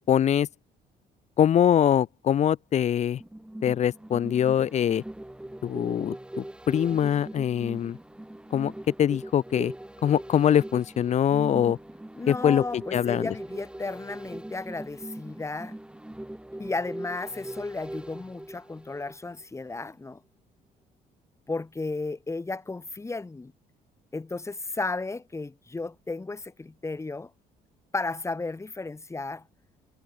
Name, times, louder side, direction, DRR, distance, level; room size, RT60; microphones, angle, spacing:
voice 1, 0.1-0.5 1.4-3.2 3.6-5.0 5.6-8.0 8.5-8.7 9.0-9.7 10.0-11.8 12.3-13.3, left 9 dB, 40° left, 0.6 m, -23 dB
sound 1, 3.2-19.4 19.8-19.9, right 1 dB, 5° right, 3.0 m, -41 dB
voice 2, 12.1-15.8 16.6-20.2 21.5-23.5 24.1-27.3 27.9-29.4, left 3 dB, 15° left, 3.3 m, -34 dB
cardioid pair, 110°, 17 cm